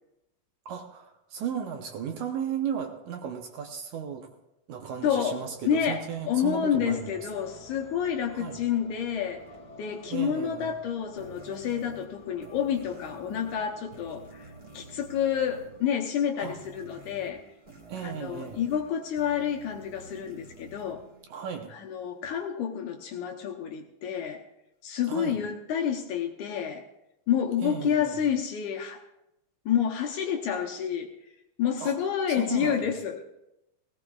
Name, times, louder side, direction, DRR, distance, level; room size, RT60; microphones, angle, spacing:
voice 1, 0.7-4.3 4.7-7.1 8.3-8.6 10.1-10.8 16.4-16.6 17.9-18.6 21.3-21.7 25.1-25.4 27.6-28.2 31.8-32.9, right 8 dB, 70° right, 4 dB, 2.0 m, -35 dB
sound 1, 4.8-17.8, left 1 dB, 50° left, 1.1 m, -52 dB
voice 2, 5.0-9.4 9.8-17.4 18.0-21.1 21.7-24.4 24.8-26.9 27.3-29.0 29.7-31.1 31.6-33.2, left 8 dB, 70° left, 3 dB, 2.0 m, -29 dB
sound 2, 11.2-22.0, right 3 dB, 25° right, 1.4 m, -51 dB
18.0 x 17.5 x 2.4 m, 0.88 s
omnidirectional pair, 4.1 m